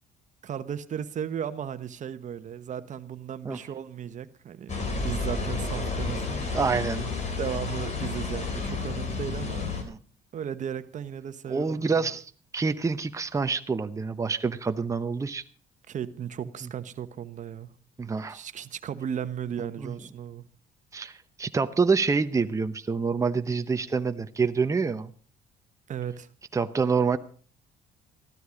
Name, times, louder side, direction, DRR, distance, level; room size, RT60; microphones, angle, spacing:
voice 1, 0.4-6.6 7.4-9.7 10.3-12.1 15.9-17.7 18.3-20.5 25.9-26.3, right 8 dB, 45° right, 1.2 m, -35 dB
sound 1, 4.7-9.8, left 3 dB, 45° left, 3.9 m, -31 dB
voice 2, 6.3-7.1 9.8-10.0 11.5-12.3 12.5-15.4 18.0-18.4 19.8-19.9 20.9-25.1 26.5-27.2, right 5 dB, 20° right, 0.9 m, -27 dB
15.0 x 12.5 x 5.1 m
cardioid pair, 110°, 17 cm